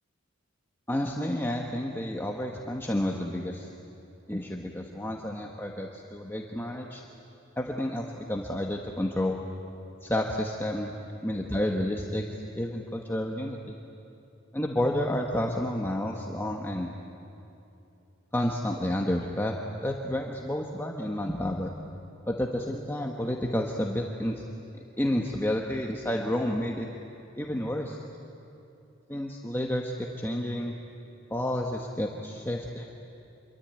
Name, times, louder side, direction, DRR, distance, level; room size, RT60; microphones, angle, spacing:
voice 1, 0.9-3.7 4.3-7.0 7.6-9.4 10.0-10.9 11.2-12.3 12.5-13.8 14.5-16.9 18.3-19.5 19.8-21.7 22.3-24.4 25.0-26.9 27.4-28.0 29.1-30.7 31.3-32.9, left 1 dB, 10° left, 0 dB, 1.3 m, -30 dB
27.0 x 23.5 x 9.0 m, 2.9 s
head